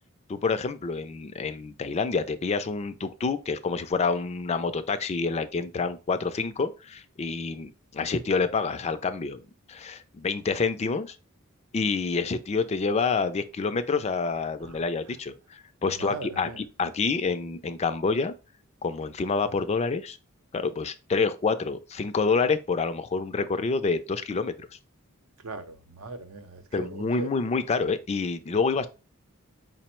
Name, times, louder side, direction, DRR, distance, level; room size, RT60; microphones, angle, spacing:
voice 1, 0.3-9.4 9.7-11.2 11.7-18.3 18.8-20.2 20.5-24.7 26.7-28.9, left 4 dB, 30° left, 0.3 m, -28 dB
voice 2, 16.0-16.6 25.4-27.3, right 3 dB, 75° right, 0.7 m, -39 dB
5.0 x 2.0 x 4.3 m
head